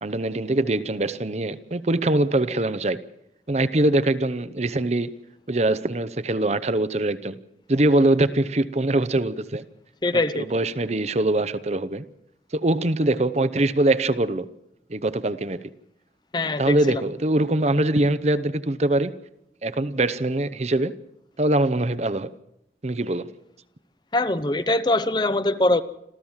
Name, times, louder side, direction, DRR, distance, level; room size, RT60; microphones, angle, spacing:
voice 1, 0.0-3.0 3.5-5.1 5.5-7.4 7.7-9.6 10.3-12.0 12.5-14.5 14.9-15.7 16.6-19.1 19.6-21.0 21.4-22.3 22.8-23.3, right 2 dB, 40° right, 0.8 m, -23 dB
voice 2, 10.0-10.5 16.3-17.0 24.1-25.8, left 2 dB, 25° left, 0.7 m, -22 dB
27.0 x 14.5 x 7.3 m
head